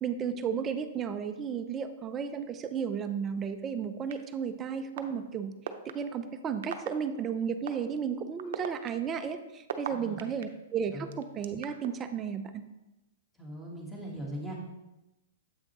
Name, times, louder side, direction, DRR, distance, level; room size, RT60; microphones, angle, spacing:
voice 1, 0.0-5.5 5.8-12.6, right 7 dB, 20° right, 9 dB, 0.4 m, -33 dB
sound 1, 4.1-4.2 5.0-5.1 5.6-5.9 6.6-6.9 7.7-7.8 8.4-10.4 11.1-11.9, right 11 dB, 60° right, 0.6 m, -36 dB
voice 2, 9.9-10.2 10.9-11.1 13.4-14.6, right 1 dB, 5° left, -3 dB, 1.4 m, -40 dB
7.8 x 5.7 x 3.0 m, 0.99 s
hypercardioid pair, 150°, 0 cm